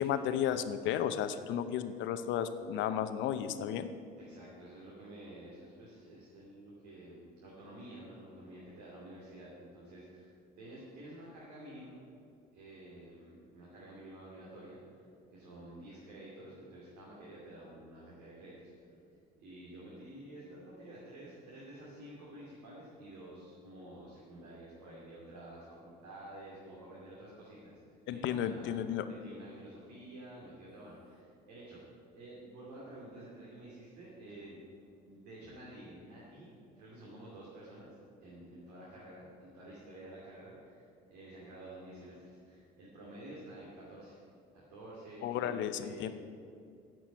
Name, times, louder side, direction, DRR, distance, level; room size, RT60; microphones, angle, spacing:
voice 1, 0.0-3.9 28.1-29.1 45.2-46.1, left 9 dB, 65° left, 11 dB, 0.7 m, -33 dB
sound 1, 2.6-6.2, right 7 dB, 30° left, 2.0 m, -59 dB
voice 2, 4.2-11.9 12.5-15.1 15.3-19.0 19.4-28.7 29.0-31.8 32.1-34.6 35.0-44.2 44.5-46.1, right 1 dB, 85° right, -6 dB, 2.6 m, -50 dB
9.2 x 6.2 x 8.4 m, 2.3 s
supercardioid pair, 75°, 20 cm